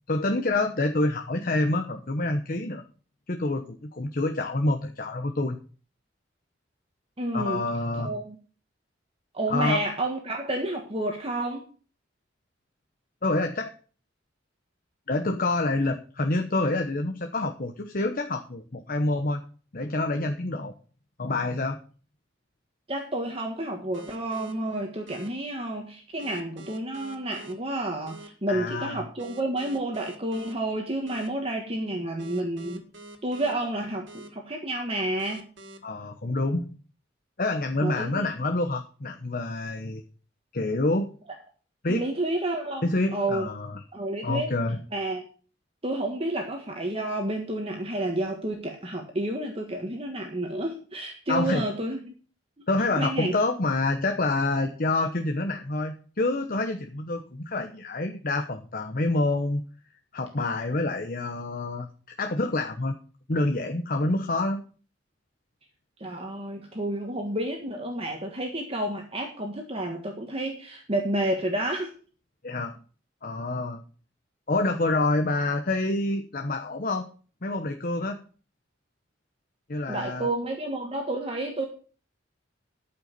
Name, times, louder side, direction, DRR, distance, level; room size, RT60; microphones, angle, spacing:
voice 1, 0.1-2.8 3.3-5.6 7.3-8.1 9.5-9.8 13.2-13.7 15.1-19.4 19.7-20.7 21.2-21.8 28.5-29.0 35.8-36.7 37.4-40.0 40.5-41.1 41.8-42.1 42.8-43.8 44.2-44.8 51.3-51.7 52.7-59.6 60.1-61.9 62.2-63.0 63.3-64.6 72.4-72.7 73.2-73.8 74.5-77.1 77.4-78.2 79.7-80.3, left 2 dB, 50° left, 5 dB, 1.0 m, -27 dB
voice 2, 7.2-7.6 8.0-8.3 9.3-11.6 22.9-32.8 33.2-35.4 37.8-38.3 41.9-43.5 43.9-44.5 44.9-45.2 45.8-52.1 53.0-53.3 66.0-71.9 79.9-81.7, right 1 dB, 30° right, 2 dB, 1.6 m, -30 dB
sound 1, 23.9-24.5 25.1-25.3 26.2-27.5 28.1-28.3 29.2-30.5 31.1-31.3 32.2-33.5 34.1-34.3 35.2-35.8, right 1 dB, 75° right, 2.2 m, -45 dB
13.0 x 5.7 x 6.8 m, 0.40 s
head